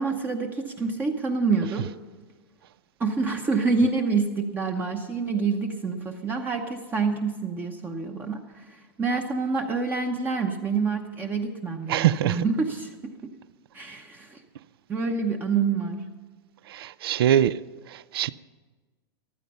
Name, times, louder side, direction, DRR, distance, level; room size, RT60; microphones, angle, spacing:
voice 1, 0.0-1.9 3.0-13.1 13.7-14.4 14.9-16.0, right 4 dB, 15° right, 0.8 m, -27 dB
voice 2, 11.9-12.4 16.7-17.6 17.9-18.3, right 11 dB, 70° right, 0.5 m, -23 dB
14.5 x 12.0 x 5.6 m
supercardioid pair, 155°, 13 cm